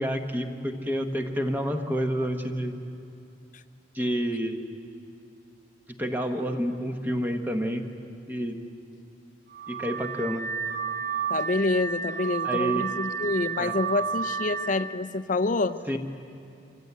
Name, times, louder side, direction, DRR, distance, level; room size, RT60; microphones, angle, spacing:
voice 1, 0.0-2.8 3.9-4.6 6.0-7.8 8.3-8.6 9.7-10.5 12.4-12.9 13.6-13.7 15.9-16.0, equal, 10° right, 4 dB, 1.2 m, -29 dB
Car / Alarm, 9.5-15.0, right 6 dB, 50° right, 0.6 m, -31 dB
voice 2, 11.3-16.0, left 3 dB, 40° left, 12 dB, 0.6 m, -27 dB
24.5 x 15.5 x 8.2 m, 2.6 s
head